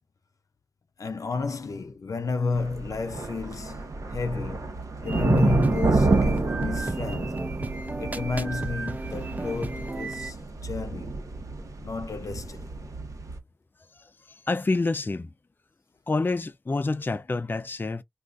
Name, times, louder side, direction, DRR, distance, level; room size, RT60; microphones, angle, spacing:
voice 1, 1.0-3.8 4.1-7.5 8.0-10.4 10.6-11.2 11.8-12.7, left 4 dB, 90° left, 0.6 m, -31 dB
sound 1, 2.5-13.4, right 3 dB, 85° right, 0.8 m, -28 dB
sound 2, 5.0-10.3, right 2 dB, 30° right, 0.5 m, -35 dB
voice 2, 14.5-15.3 16.1-18.0, left 3 dB, 35° left, 0.3 m, -27 dB
2.5 x 2.4 x 3.3 m
wide cardioid pair, 70°, 6 cm